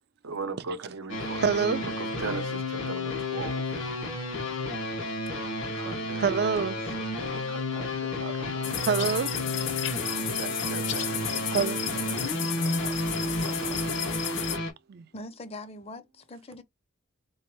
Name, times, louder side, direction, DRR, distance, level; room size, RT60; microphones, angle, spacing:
voice 1, 0.2-1.4 1.8-3.7 5.7-6.7 7.1-8.9 10.2-11.4 11.9-14.4, right 4 dB, 90° right, 0.7 m, -40 dB
sound 1, 1.1-14.7, left 1 dB, 85° left, 1.6 m, -32 dB
voice 2, 1.4-1.9 6.2-6.8 8.9-9.3 11.5-11.8 14.9-15.1, right 5 dB, 55° right, 0.4 m, -26 dB
sound 2, 8.6-14.6, left 10 dB, 65° left, 0.7 m, -33 dB
voice 3, 15.1-16.6, left 2 dB, 30° left, 0.5 m, -42 dB
4.0 x 3.1 x 3.0 m
head